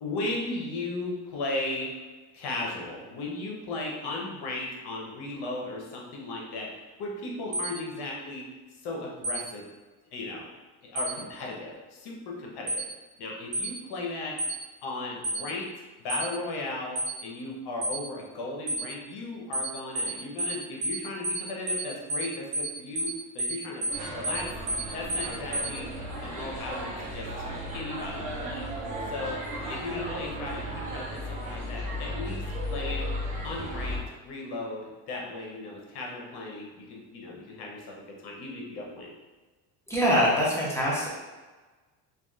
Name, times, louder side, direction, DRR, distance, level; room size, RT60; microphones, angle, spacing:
voice 1, 0.0-1.9 2.3-6.7 7.0-8.5 8.8-9.6 10.1-10.5 10.8-12.9 13.2-14.4 14.8-15.7 16.0-23.1 23.3-24.5 24.9-25.9 26.2-28.7 29.1-29.4 29.7-32.4 32.7-33.1 33.4-34.8 35.1-39.1, left 2 dB, 60° left, -1 dB, 0.8 m, -36 dB
sound 1, 7.5-7.7 9.2-9.4 11.0-11.1 12.7-12.8 13.5-13.7 14.4-14.6 15.2-15.4 16.1-16.3 17.0-17.1 17.8-18.0 18.7-18.8 19.5-19.7 20.0-20.1 20.4-20.6 20.8-21.0 21.2-21.4 21.7-21.8 22.1-22.3 22.5-22.7 23.0-23.1 23.4-23.6 23.8-24.0 24.2-24.4 24.7-24.8 25.1-25.3 25.5-25.7, right 1 dB, 40° right, 0.8 m, -29 dB
sound 2, 23.9-34.0, equal, 15° right, 1.0 m, -35 dB
voice 2, 39.9-41.1, equal, 5° left, -7 dB, 0.6 m, -24 dB
2.8 x 2.3 x 2.3 m, 1.3 s
cardioid pair, 110°, 45 cm